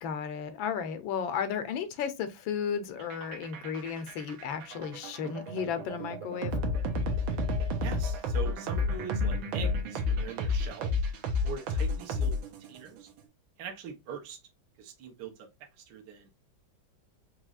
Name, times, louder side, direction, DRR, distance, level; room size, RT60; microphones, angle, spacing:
voice 1, 0.0-6.5, left 7 dB, 80° left, 1.4 m, -34 dB
sound 1, 3.0-12.8, left 2 dB, 85° right, 1.6 m, -31 dB
voice 2, 7.8-10.9 11.4-12.3 12.7-13.1 13.6-14.4 14.8-15.5 15.8-16.3, right 6 dB, 65° right, 1.4 m, -42 dB
4.9 x 3.0 x 2.3 m
omnidirectional pair, 2.2 m